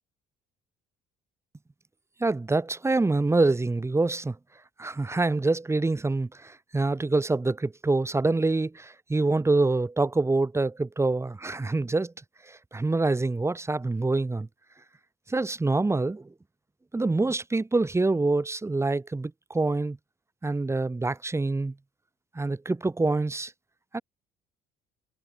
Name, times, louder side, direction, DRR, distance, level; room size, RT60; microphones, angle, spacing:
voice 1, 2.2-4.4 4.8-12.1 12.5-14.5 15.3-16.2 16.9-20.0 20.4-21.7 22.4-23.5 23.9-24.0, right 3 dB, 15° right, 4.1 m, -26 dB
cardioid pair, 110°, 17 cm